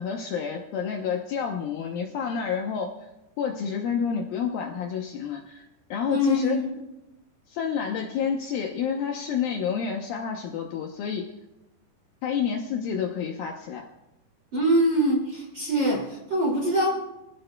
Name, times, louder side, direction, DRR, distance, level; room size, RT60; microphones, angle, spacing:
voice 1, 0.0-2.9 3.4-5.6 5.9-6.6 7.5-11.3 12.2-13.9, left 7 dB, 75° left, 1 dB, 2.3 m, -29 dB
voice 2, 6.1-6.7 14.5-16.9, equal, 30° right, -2 dB, 2.3 m, -23 dB
25.0 x 16.0 x 2.2 m, 0.96 s
omnidirectional pair, 4.9 m